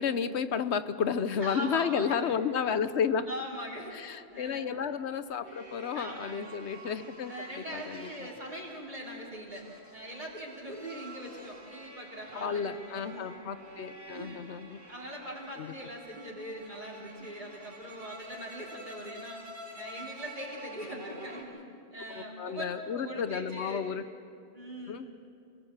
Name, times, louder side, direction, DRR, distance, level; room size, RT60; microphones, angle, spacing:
voice 1, 0.0-3.3 3.9-7.3 7.7-8.1 12.3-14.8 15.6-15.7 22.2-24.0 24.9-25.0, left 7 dB, 90° left, 12 dB, 1.2 m, -32 dB
voice 2, 1.4-2.4 3.2-4.7 5.9-6.5 7.3-13.4 14.1-14.5 14.9-19.4 19.8-21.6 21.9-23.9 24.5-25.0, equal, 45° right, -2 dB, 3.4 m, -41 dB
sound 1, 3.7-21.4, right 1 dB, 60° right, 4.5 m, -49 dB
27.5 x 18.0 x 7.4 m, 2.5 s
omnidirectional pair, 1.1 m